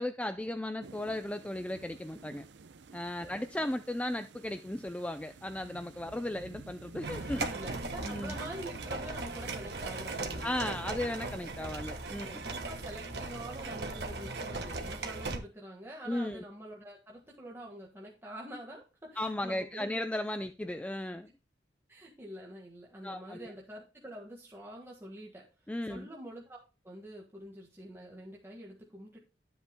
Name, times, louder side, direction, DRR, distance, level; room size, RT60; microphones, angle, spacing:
voice 1, 0.0-2.4 2.9-7.5 8.0-8.4 10.4-12.4 16.1-16.4 19.2-21.3 23.0-23.5 25.7-26.1, left 1 dB, 10° left, 0.4 m, -36 dB
sound 1, 0.8-13.7, right 3 dB, 85° right, 0.6 m, -51 dB
sound 2, 7.0-15.4, right 3 dB, 70° right, 1.5 m, -38 dB
voice 2, 7.3-11.0 12.4-19.9 21.9-25.4 25.9-26.6 26.8-29.2, right 1 dB, 15° right, 1.6 m, -46 dB
13.0 x 8.0 x 2.2 m
head